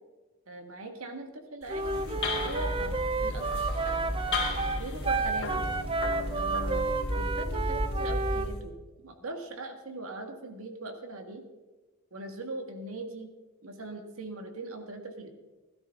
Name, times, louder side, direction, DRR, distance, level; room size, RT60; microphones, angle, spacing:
voice 1, 0.5-3.6 4.3-5.5 6.3-11.4 12.1-13.3 13.6-15.3, right 2 dB, 70° right, 5 dB, 1.8 m, -40 dB
sound 1, 1.6-8.6, left 1 dB, 55° left, 3.5 m, -33 dB
Wind instrument woodwind instrument, 1.7-8.5, right 4 dB, 25° right, 0.5 m, -31 dB
16.0 x 12.5 x 3.7 m, 1.2 s
head